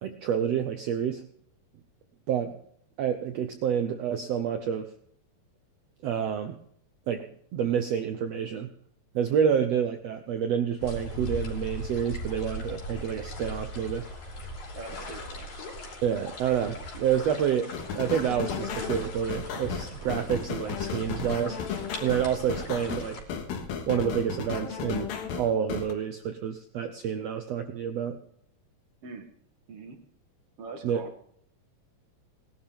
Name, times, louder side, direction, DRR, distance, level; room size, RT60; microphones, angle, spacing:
voice 1, 0.0-1.3 2.3-2.6 3.0-4.9 6.0-6.6 7.1-7.3 7.5-8.7 9.1-14.1 16.0-21.6 22.0-23.2 23.9-28.2 30.8-31.0, right 8 dB, 85° right, 7 dB, 1.4 m, -28 dB
sound 1, 10.8-23.2, equal, 55° left, 4.5 m, -39 dB
voice 2, 14.7-15.5 29.0-29.3 29.7-30.0 30.6-31.1, right 4 dB, 50° right, 5 dB, 2.2 m, -42 dB
sound 2, 17.7-25.9, left 6 dB, 90° left, 3.3 m, -34 dB
19.0 x 12.0 x 3.6 m, 0.68 s
omnidirectional pair, 4.0 m